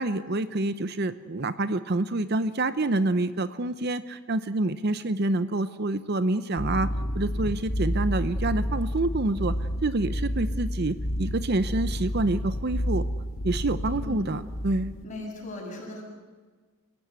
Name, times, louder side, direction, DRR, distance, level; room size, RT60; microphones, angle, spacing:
voice 1, 0.0-6.9 7.1-9.6 9.8-13.0 13.4-14.9, right 2 dB, 50° right, 13 dB, 0.7 m, -27 dB
sound 1, 6.6-15.0, equal, 65° left, 2.7 m, -30 dB
voice 2, 15.0-16.0, left 2 dB, 35° left, -2 dB, 7.8 m, -37 dB
28.5 x 16.5 x 8.2 m, 1.4 s
head